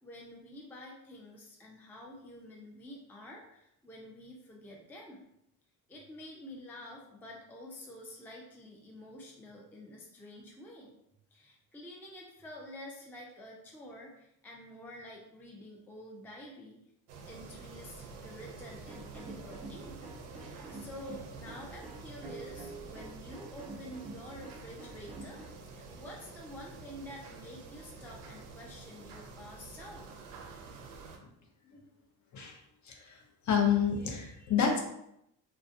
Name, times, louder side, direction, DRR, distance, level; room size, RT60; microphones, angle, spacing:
voice 1, 0.0-5.3 5.9-10.9 11.3-16.8 17.2-20.0 20.7-25.4 25.7-30.1, left 1 dB, 5° left, -2 dB, 0.4 m, -49 dB
sound 1, 17.1-31.2, right 4 dB, 90° right, 0.5 m, -48 dB
sound 2, 18.9-25.4, right 2 dB, 15° right, 0.9 m, -47 dB
voice 2, 32.8-33.2 33.5-34.8, left 7 dB, 45° left, 0 dB, 0.7 m, -29 dB
2.2 x 2.2 x 2.6 m, 0.79 s
supercardioid pair, 70°, 42 cm